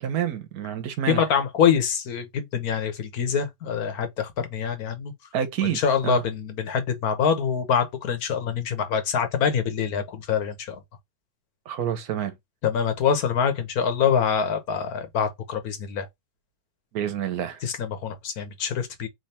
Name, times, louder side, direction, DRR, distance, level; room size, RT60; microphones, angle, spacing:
voice 1, 0.0-1.2 5.3-6.2 11.7-12.3 16.9-17.6, right 9 dB, 80° right, 1.3 m, -28 dB
voice 2, 1.1-5.1 5.6-10.8 12.6-16.1 17.6-19.1, left 7 dB, 80° left, 1.5 m, -25 dB
3.4 x 3.3 x 4.2 m
omnidirectional pair, 1.6 m